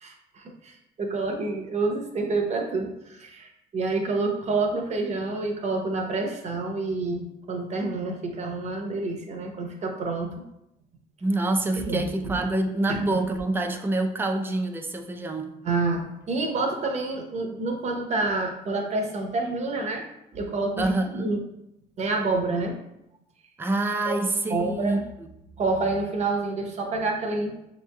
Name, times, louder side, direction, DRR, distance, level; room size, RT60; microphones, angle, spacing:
voice 1, 0.0-10.3 11.8-12.4 12.9-13.2 15.6-20.1 20.3-21.4 22.0-22.8 24.0-24.1 24.5-25.0 25.6-27.6, right 3 dB, 40° right, 3 dB, 0.8 m, -28 dB
voice 2, 11.2-15.5 20.8-21.3 23.6-25.3, right 2 dB, 10° right, 4 dB, 0.4 m, -26 dB
6.1 x 3.0 x 2.2 m, 0.83 s
cardioid pair, 110°, 17 cm